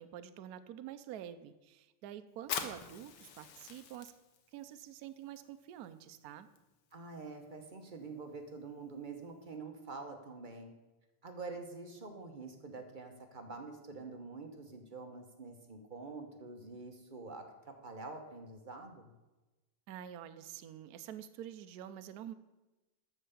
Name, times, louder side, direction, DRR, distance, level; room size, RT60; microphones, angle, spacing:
voice 1, 0.0-4.1 4.5-6.5 19.9-22.3, right 10 dB, 75° right, 10 dB, 0.9 m, -47 dB
Fire, 2.4-9.6, left 7 dB, 90° left, 1.9 m, -47 dB
voice 2, 6.9-10.7 11.2-19.1, right 3 dB, 40° right, 4 dB, 0.7 m, -46 dB
13.0 x 4.7 x 6.9 m, 1.1 s
omnidirectional pair, 2.4 m